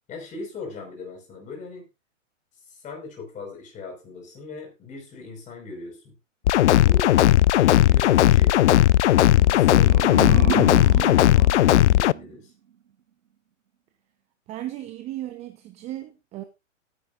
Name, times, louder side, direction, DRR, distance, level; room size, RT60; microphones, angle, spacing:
voice 1, 0.1-1.9 2.5-6.1 6.8-7.2 7.5-8.6 9.4-12.5, left 3 dB, 20° left, 5.0 m, -39 dB
sound 1, 6.5-12.1, left 13 dB, 65° left, 0.5 m, -17 dB
sound 2, 9.4-12.4, right 9 dB, 90° right, 0.9 m, -31 dB
voice 2, 14.5-16.4, right 14 dB, 15° right, 0.7 m, -35 dB
17.0 x 10.0 x 2.5 m
hypercardioid pair, 140°, 39 cm